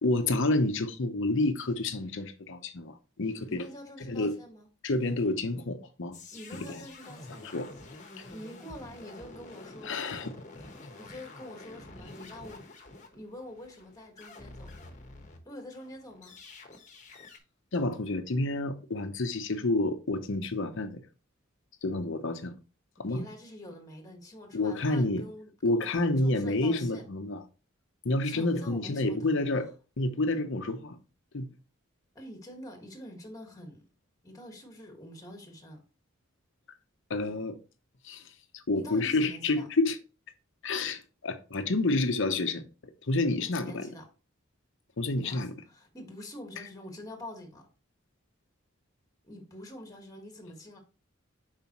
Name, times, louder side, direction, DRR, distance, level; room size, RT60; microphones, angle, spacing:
voice 1, 0.0-3.7 4.1-4.4 4.8-6.2 6.5-6.8 7.5-7.7 9.8-10.7 17.7-21.0 21.8-22.5 23.0-23.2 24.5-25.2 25.6-27.4 28.0-29.7 30.0-31.0 31.3-31.5 37.1-37.6 38.0-38.2 38.5-40.0 40.6-42.6 43.1-43.8 45.0-45.5, left 2 dB, 65° left, 0.8 m, -29 dB
voice 2, 3.5-4.7 6.3-7.6 8.3-10.0 11.0-12.6 13.0-14.7 15.4-16.4 23.0-27.1 28.2-29.7 32.1-33.8 34.2-35.8 38.7-39.7 43.4-44.0 45.2-47.7 49.2-50.8, left 1 dB, 15° left, 1.6 m, -46 dB
sound 1, 6.1-15.4 15.7-17.4, left 2 dB, 35° left, 1.1 m, -48 dB
7.1 x 4.9 x 3.0 m
head